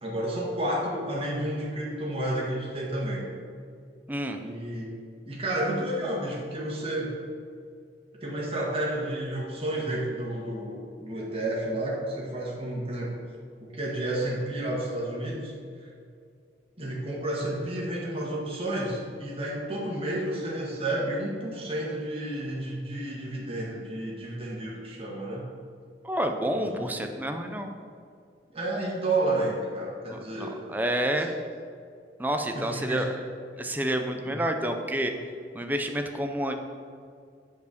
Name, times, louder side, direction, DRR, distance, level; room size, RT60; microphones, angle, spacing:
voice 1, 0.0-3.3 4.4-4.9 5.3-7.2 8.2-13.1 13.6-15.5 15.8-15.9 16.8-25.5 26.5-27.0 28.5-30.6 31.2-31.3 32.5-33.1 34.3-34.4, right 1 dB, 35° right, -4 dB, 1.6 m, -31 dB
voice 2, 4.1-4.4 26.0-27.7 30.1-31.3 32.2-33.1 33.6-35.1 35.5-36.6, right 1 dB, 10° right, 5 dB, 0.5 m, -29 dB
8.2 x 4.6 x 6.6 m, 2.3 s
head